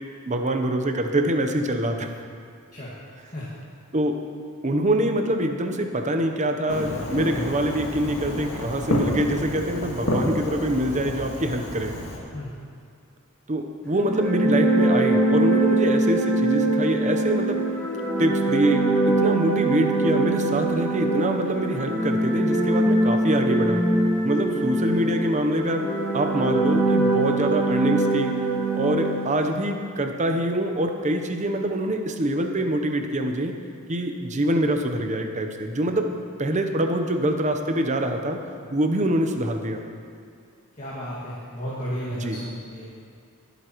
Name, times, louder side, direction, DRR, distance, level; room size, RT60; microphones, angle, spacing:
voice 1, 0.3-2.1 3.9-4.2 4.6-12.0 13.5-17.6 18.2-23.8 24.2-25.9 26.1-28.3 28.7-33.5 33.9-36.1 36.4-38.4 38.7-39.8 42.2-42.4, right 1 dB, 35° right, 5 dB, 0.8 m, -25 dB
voice 2, 3.3-3.6 12.3-12.6 40.8-42.9, equal, 35° left, -8 dB, 1.9 m, -33 dB
Fireworks, 6.7-12.2, left 1 dB, 80° left, 1.8 m, -29 dB
sound 1, 13.9-29.6, right 2 dB, 5° left, 1.6 m, -23 dB
21.0 x 8.2 x 3.1 m, 2.3 s
head